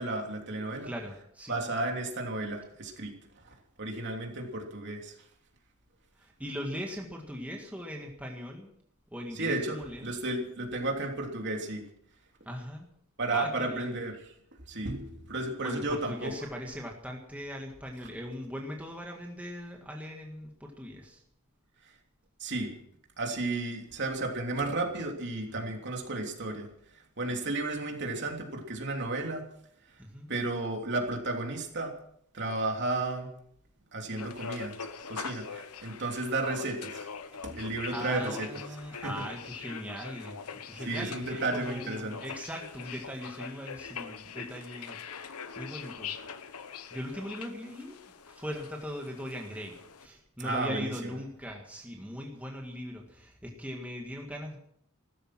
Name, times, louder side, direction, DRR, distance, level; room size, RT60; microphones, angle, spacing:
voice 1, 0.0-0.9 1.5-3.2 3.4-5.1 9.4-11.9 13.2-14.1 14.7-16.3 22.4-22.8 23.2-26.7 26.9-29.4 30.3-31.9 32.3-33.3 33.9-34.8 35.1-37.1 37.4-38.5 38.9-39.2 40.8-42.2 50.4-50.9, right 2 dB, 55° right, 2 dB, 3.2 m, -33 dB
voice 2, 0.8-1.6 6.2-8.7 9.1-10.1 12.5-12.9 13.3-13.9 15.6-21.2 25.5-25.7 30.0-30.3 37.9-40.4 40.7-46.1 46.9-54.6, equal, 5° right, 1 dB, 1.8 m, -40 dB
sound 1, 34.2-50.1, left 6 dB, 90° left, 1.0 m, -43 dB
15.5 x 13.5 x 6.2 m, 0.69 s
head